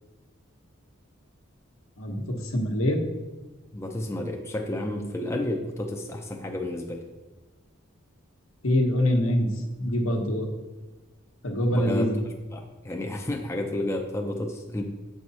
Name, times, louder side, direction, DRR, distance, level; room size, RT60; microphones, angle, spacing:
voice 1, 2.0-3.0 8.6-9.5 9.8-10.5 11.4-12.1, left 1 dB, 80° left, 2 dB, 1.2 m, -24 dB
voice 2, 3.7-7.0 11.7-12.1 12.5-14.8, left 1 dB, 15° left, 2 dB, 0.5 m, -31 dB
7.7 x 4.8 x 4.1 m, 1.2 s
head